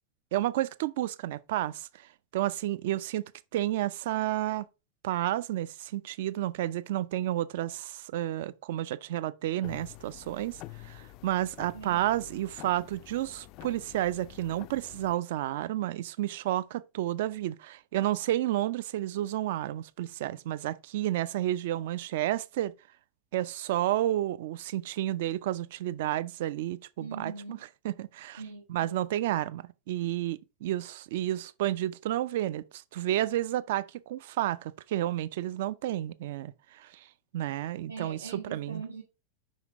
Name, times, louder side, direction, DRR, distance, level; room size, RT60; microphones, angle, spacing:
voice 1, 0.3-3.2 3.5-4.7 5.0-22.7 23.3-27.6 27.8-28.4 28.7-37.1 37.3-38.2 38.5-38.8, right 13 dB, 55° right, 0.5 m, -31 dB
sound 1, 9.6-15.2, left 17 dB, 40° left, 0.3 m, -48 dB
voice 2, 11.7-12.3 27.0-27.6 28.4-29.1 37.9-39.0, right 4 dB, 80° right, 1.4 m, -42 dB
5.6 x 5.1 x 3.5 m
figure-of-eight pair, 90°, 0 cm